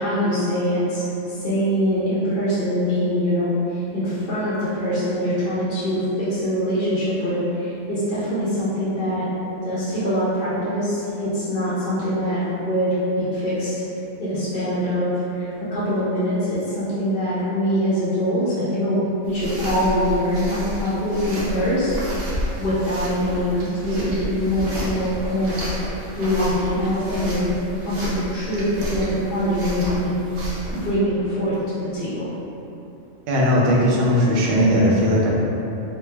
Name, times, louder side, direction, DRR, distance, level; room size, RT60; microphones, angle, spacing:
voice 1, 0.0-6.0 6.3-9.3 9.6-13.8 14.2-21.9 22.6-25.6 26.2-27.5 27.8-30.1 30.7-32.3, equal, 50° left, -11 dB, 0.7 m, -23 dB
sound 1, 19.3-30.9, equal, 80° right, 1.2 m, -31 dB
voice 2, 33.3-35.3, equal, 60° right, -4 dB, 0.6 m, -18 dB
3.2 x 2.1 x 3.2 m, 2.9 s
omnidirectional pair, 1.5 m